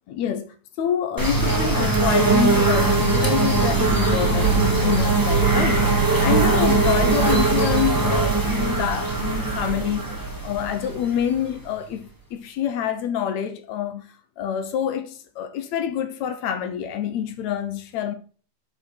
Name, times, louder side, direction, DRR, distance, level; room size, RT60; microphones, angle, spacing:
voice 1, 0.1-10.1 10.4-18.1, left 9 dB, 75° left, 2.0 m, -27 dB
sound 1, 1.2-11.8, right 3 dB, 20° right, 0.5 m, -20 dB
6.6 x 6.2 x 4.4 m
omnidirectional pair, 3.4 m